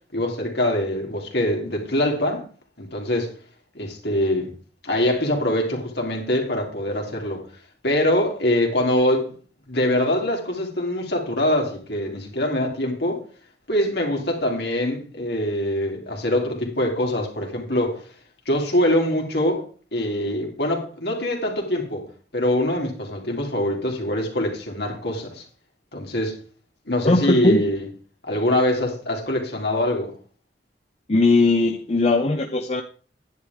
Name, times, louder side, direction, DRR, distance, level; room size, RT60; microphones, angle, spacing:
voice 1, 0.1-2.4 2.8-3.3 3.7-4.5 4.8-7.4 7.8-9.3 9.7-13.2 13.7-18.0 18.4-19.6 19.9-22.0 22.3-25.4 25.9-26.4 26.9-27.9 28.3-30.1, left 1 dB, 65° left, 3.0 m, -23 dB
voice 2, 27.0-27.6 31.1-32.8, left 2 dB, 35° left, 0.7 m, -19 dB
10.5 x 10.0 x 3.6 m
head